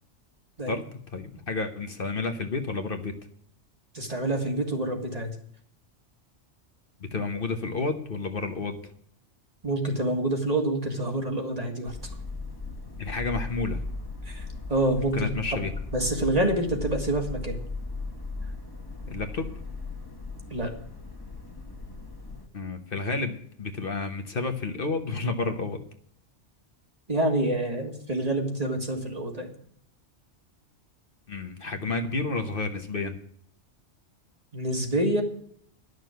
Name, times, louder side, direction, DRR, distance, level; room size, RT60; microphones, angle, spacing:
voice 1, 1.1-3.1 7.0-8.9 13.0-13.8 15.1-15.7 19.1-19.5 22.5-25.8 31.3-33.2, left 3 dB, 50° left, 6 dB, 1.2 m, -30 dB
voice 2, 3.9-5.3 9.6-12.0 14.3-15.3 15.9-17.6 20.5-20.7 27.1-29.5 34.5-35.2, right 1 dB, 35° right, 3 dB, 1.9 m, -27 dB
sound 1, 11.9-22.5, left 3 dB, 20° left, 1.6 m, -37 dB
11.5 x 6.6 x 9.1 m, 0.65 s
omnidirectional pair, 1.2 m